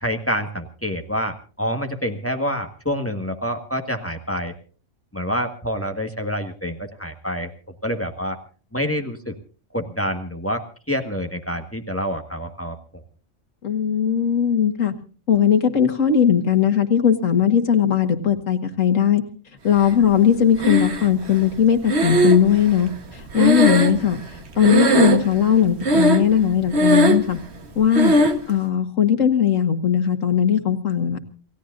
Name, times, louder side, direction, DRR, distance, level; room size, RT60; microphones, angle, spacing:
voice 1, 0.0-4.5 5.1-7.5 7.8-8.4 8.7-9.3 9.7-12.8, equal, 10° left, 5 dB, 1.7 m, -27 dB
voice 2, 13.6-14.9 15.3-19.2 19.6-24.2 24.6-27.4 27.8-28.1 28.5-31.2, left 8 dB, 85° left, 7 dB, 2.0 m, -18 dB
Breathing, 20.6-21.3 21.9-24.4 24.6-25.4 25.8-26.4 26.7-27.3 27.9-28.4, right 1 dB, 60° right, 1.6 m, -18 dB
28.5 x 16.5 x 2.6 m, 0.38 s
omnidirectional pair, 1.3 m